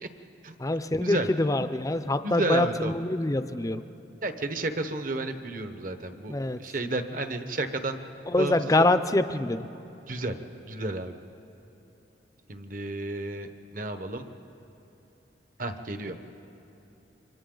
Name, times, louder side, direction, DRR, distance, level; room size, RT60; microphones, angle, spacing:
voice 1, 0.6-3.8 6.3-6.6 8.3-9.7, left 2 dB, 20° left, 10 dB, 0.5 m, -25 dB
voice 2, 2.2-2.9 4.2-8.0 8.4-8.9 10.1-10.4 10.7-11.1 12.5-14.3 15.6-16.2, right 2 dB, 50° right, 8 dB, 1.1 m, -32 dB
29.0 x 25.0 x 3.9 m, 3.0 s
head